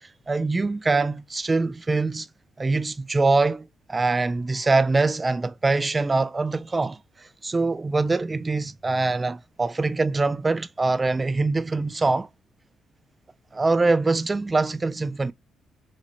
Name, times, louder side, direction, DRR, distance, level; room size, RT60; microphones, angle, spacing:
voice 1, 0.3-2.3 2.6-3.6 3.9-12.3 13.5-15.3, right 3 dB, 25° right, 0.3 m, -23 dB
2.8 x 2.8 x 2.5 m
cardioid pair, 90°, 0 cm